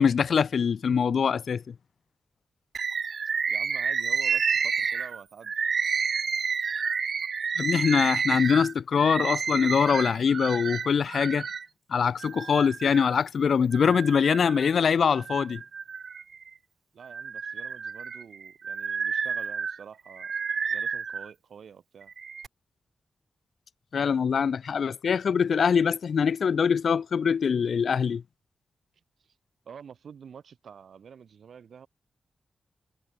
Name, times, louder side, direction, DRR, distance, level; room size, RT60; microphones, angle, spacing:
voice 1, 0.0-1.7 7.6-11.5 11.9-15.6 23.9-28.2, left 6 dB, 65° left, 0.7 m, -23 dB
Bird, 2.7-11.7 12.2-13.2 13.7-14.7 15.2-16.5 17.0-21.3 22.0-22.5, right 6 dB, 55° right, 2.9 m, -30 dB
voice 2, 3.5-5.6 16.9-20.3 20.7-22.1 29.2-29.4 29.6-31.9, right 7 dB, 75° right, 7.5 m, -48 dB
wide cardioid pair, 170°, 0 cm